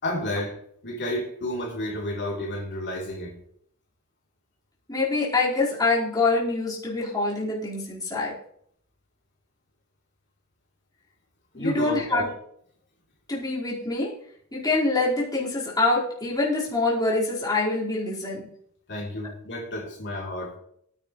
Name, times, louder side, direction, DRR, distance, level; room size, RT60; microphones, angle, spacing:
voice 1, 0.0-0.5 0.8-3.4 11.5-12.3 18.9-20.6, left 1 dB, 55° left, -3 dB, 3.3 m, -31 dB
voice 2, 4.9-8.4 11.5-12.3 13.3-14.1 14.5-18.5, left 3 dB, 20° left, -7 dB, 4.6 m, -25 dB
18.5 x 9.9 x 3.2 m, 0.67 s
head